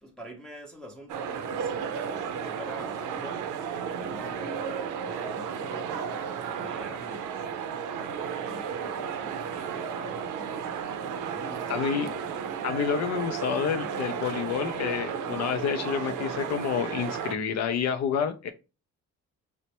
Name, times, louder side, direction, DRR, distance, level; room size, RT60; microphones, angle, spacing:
voice 1, 0.0-3.5 4.0-7.4 8.0-10.7 11.3-12.3, equal, ahead, 0.6 m, -45 dB
sound 1, 1.1-17.4, right 7 dB, 80° right, 0.5 m, -33 dB
voice 2, 11.7-12.1 12.6-18.5, left 7 dB, 60° left, 0.4 m, -29 dB
4.2 x 2.1 x 2.8 m
cardioid pair, 125°, 30 cm